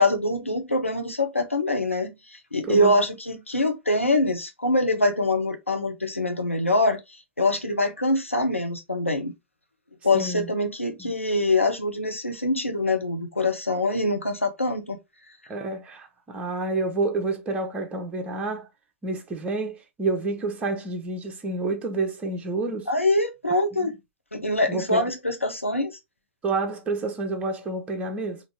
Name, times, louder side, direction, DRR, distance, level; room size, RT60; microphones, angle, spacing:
voice 1, 0.0-7.0 7.4-9.3 10.0-15.0 22.9-23.9 24.3-25.9, left 2 dB, 85° left, 1.0 m, -24 dB
voice 2, 2.7-3.0 10.1-10.5 11.0-11.1 15.5-18.7 19.0-22.9 23.8-23.9 24.7-25.0 26.4-28.4, right 3 dB, 15° right, 1.0 m, -29 dB
4.1 x 2.9 x 3.2 m
figure-of-eight pair, 110°, 7 cm